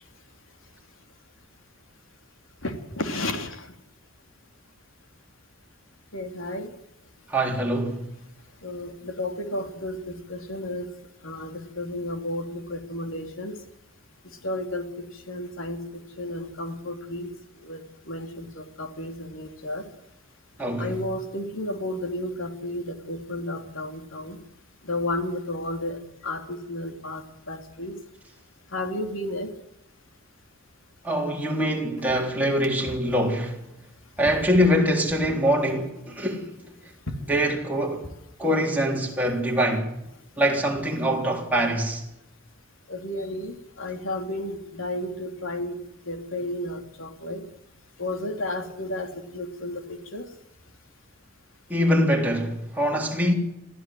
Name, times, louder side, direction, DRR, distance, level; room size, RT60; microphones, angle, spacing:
voice 1, 2.6-3.7 6.1-6.7 8.6-10.9 11.2-13.5 14.4-14.9 15.3-17.3 17.6-17.8 18.1-19.8 20.8-24.4 24.8-26.0 26.2-27.9 28.7-29.5 37.1-37.2 42.9-45.8 46.1-47.4 48.0-50.3, left 1 dB, 80° left, 3.1 m, -32 dB
voice 2, 7.3-8.1 20.6-20.9 31.0-33.6 34.2-36.6 37.3-38.1 38.4-39.9 40.4-42.0 51.7-53.3, equal, 10° right, 3.7 m, -24 dB
24.0 x 15.0 x 7.8 m
head